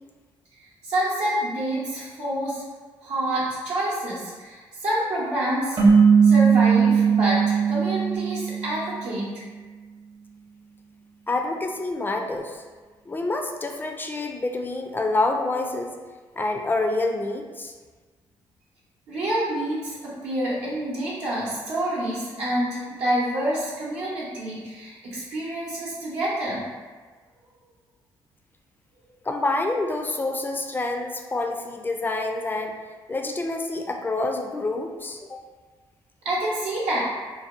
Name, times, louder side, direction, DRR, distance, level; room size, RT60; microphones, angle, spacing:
voice 1, 0.8-2.6 3.0-5.8 6.2-9.3 19.1-20.0 20.2-26.6 36.2-37.0, right 1 dB, 80° right, -7 dB, 0.7 m, -27 dB
sound 1, 5.8-9.1, right 6 dB, 45° right, 0.7 m, -18 dB
voice 2, 11.3-12.6 13.1-15.9 16.4-17.7 29.2-32.8 33.1-35.4, left 2 dB, 20° left, 3 dB, 0.3 m, -27 dB
2.7 x 2.0 x 2.4 m, 1.4 s
supercardioid pair, 65°, 10 cm